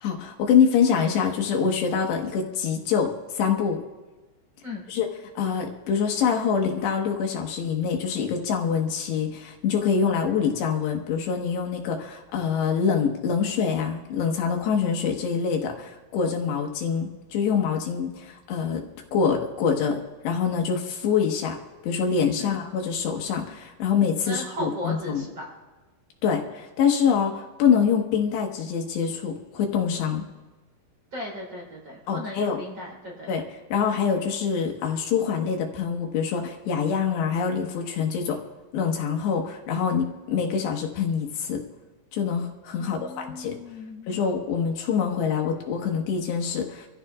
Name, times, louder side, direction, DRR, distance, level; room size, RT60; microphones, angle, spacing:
voice 1, 0.0-3.8 4.9-5.1 5.4-18.8 19.1-21.6 21.8-25.2 26.2-30.2 32.1-32.6 33.3-38.4 38.7-41.6 42.1-43.6 44.1-46.9, left 6 dB, 85° left, 2 dB, 3.6 m, -25 dB
voice 2, 24.3-25.5 31.1-33.3 42.8-44.1, left 1 dB, 30° right, -1 dB, 4.2 m, -36 dB
26.5 x 14.5 x 2.4 m, 1.2 s
omnidirectional pair, 4.8 m